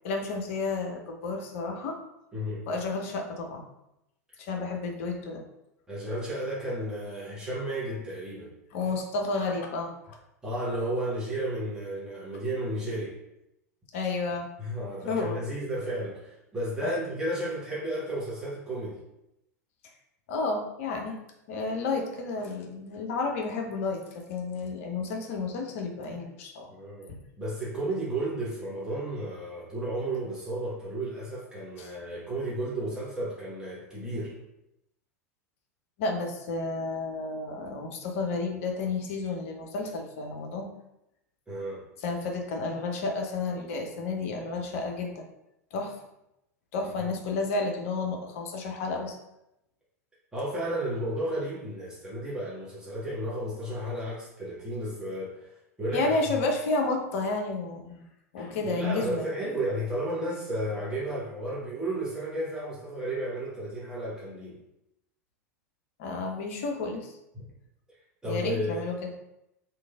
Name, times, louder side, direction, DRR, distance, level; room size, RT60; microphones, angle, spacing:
voice 1, 0.0-2.0 2.7-3.6 4.4-5.4 8.7-10.2 13.9-14.5 15.0-15.4 16.8-17.0 20.3-21.2 21.5-26.7 27.1-27.2 31.8-31.9 36.0-40.7 42.0-45.2 45.7-46.0 46.7-49.2 55.9-58.0 58.3-59.3 66.0-67.2 68.2-69.1, left 3 dB, 50° left, 2 dB, 0.6 m, -31 dB
voice 2, 2.3-2.6 4.3-4.4 5.9-8.5 10.4-13.1 14.6-19.0 26.7-27.1 27.4-34.4 41.5-41.8 46.8-47.1 50.3-55.5 55.8-56.1 58.4-64.6 68.2-68.9, right 1 dB, 10° right, -8 dB, 0.9 m, -33 dB
3.0 x 2.5 x 2.4 m, 0.86 s
figure-of-eight pair, 85°, 9 cm